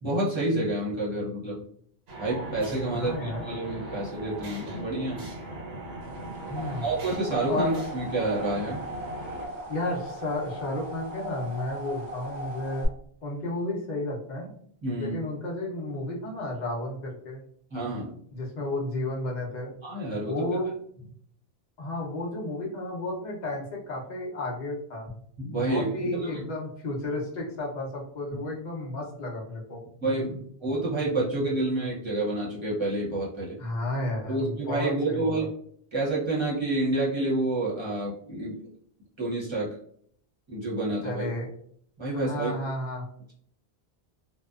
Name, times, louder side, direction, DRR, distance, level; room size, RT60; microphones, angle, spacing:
voice 1, 0.0-1.6 2.2-5.3 6.8-8.8 14.8-15.2 17.7-18.2 19.8-20.5 25.4-26.4 30.0-33.6 34.3-35.5 35.9-38.6 39.2-39.7 40.5-41.3 42.0-42.5, right 2 dB, 30° right, -7 dB, 0.9 m, -29 dB
sound 1, 2.1-9.5, right 1 dB, 70° right, 1.0 m, -39 dB
voice 2, 2.9-3.4 6.5-6.9 7.5-7.8 9.7-12.9 13.2-14.5 15.0-17.4 18.3-19.7 20.3-20.7 21.8-25.1 25.7-29.8 33.6-35.5 41.0-41.5 42.1-43.1, left 2 dB, 50° left, -1 dB, 0.7 m, -32 dB
sound 2, 6.2-12.9, equal, 50° right, 0.6 m, -39 dB
2.6 x 2.2 x 2.3 m, 0.64 s
omnidirectional pair, 1.1 m